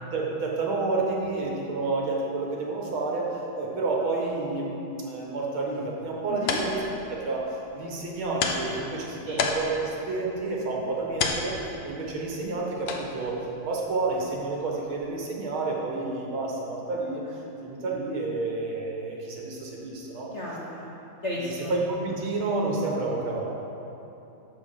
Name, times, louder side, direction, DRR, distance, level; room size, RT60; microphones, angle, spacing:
voice 1, 0.1-6.8 7.1-7.4 7.7-11.6 11.8-13.4 13.7-17.2 17.6-20.3 21.4-23.6, right 3 dB, 75° right, -2 dB, 2.1 m, -30 dB
sound 1, 6.0-15.3, left 4 dB, 70° left, 1.5 m, -34 dB
voice 2, 6.3-6.6 9.3-9.5 20.3-21.7, left 1 dB, 50° left, -5 dB, 0.9 m, -35 dB
11.0 x 4.1 x 6.8 m, 2.9 s
omnidirectional pair, 2.3 m